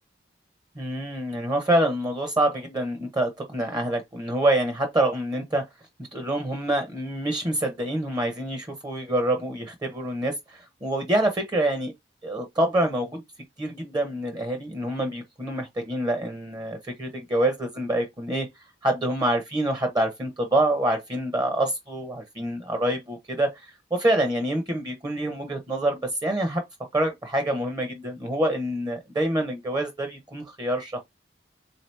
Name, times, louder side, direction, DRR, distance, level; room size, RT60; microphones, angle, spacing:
voice 1, 0.8-5.6 6.1-11.9 12.2-13.2 13.6-18.5 18.8-23.6 23.9-26.6 26.9-31.0, right 1 dB, 25° right, 0.7 m, -26 dB
3.7 x 2.8 x 3.2 m
head